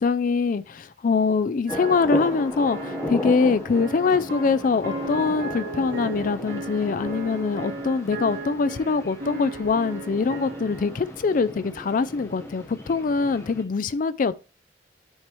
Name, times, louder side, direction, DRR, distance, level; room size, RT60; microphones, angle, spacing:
voice 1, 0.0-14.4, left 4 dB, 45° left, 0.4 m, -23 dB
sound 1, 1.7-13.6, left 1 dB, 15° left, 1.1 m, -36 dB
sound 2, 1.7-11.2, right 2 dB, 65° right, 2.2 m, -36 dB
9.6 x 4.6 x 3.1 m
head